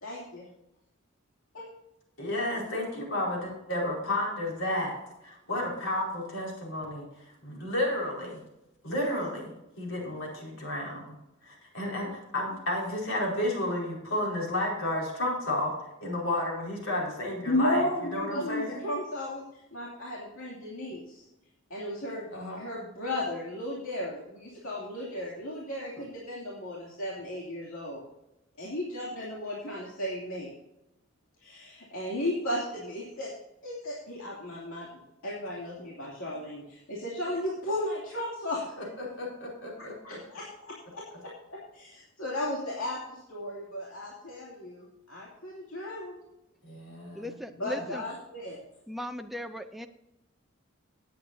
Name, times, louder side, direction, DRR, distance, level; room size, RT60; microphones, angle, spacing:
voice 1, 0.0-0.5 1.5-1.7 17.5-19.4 19.7-21.2 21.7-22.3 22.6-28.0 28.6-30.5 31.4-33.3 33.6-34.9 35.2-38.8 39.8-46.1 47.6-48.6, left 1 dB, 90° left, -5 dB, 2.7 m, -35 dB
voice 2, 2.2-4.9 5.2-7.0 7.4-8.4 8.8-11.2 11.4-15.7 16.0-17.8 18.1-18.8 22.3-22.6 39.0-40.2 46.6-47.3, left 1 dB, 70° left, -2 dB, 4.7 m, -32 dB
voice 3, 47.1-48.0 48.9-49.9, equal, ahead, 6 dB, 0.4 m, -37 dB
17.5 x 8.7 x 2.7 m, 0.92 s
head